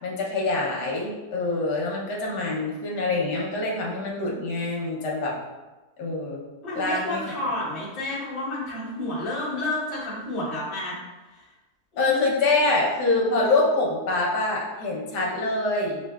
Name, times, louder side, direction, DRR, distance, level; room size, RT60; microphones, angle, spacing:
voice 1, 0.0-5.4 6.0-6.4 6.7-7.2 12.0-16.0, left 2 dB, 85° left, -3 dB, 1.4 m, -25 dB
voice 2, 6.6-11.0 11.3-11.5 11.9-12.2, left 1 dB, 35° left, -7 dB, 1.4 m, -30 dB
6.3 x 2.5 x 2.3 m, 1.2 s
omnidirectional pair, 1.7 m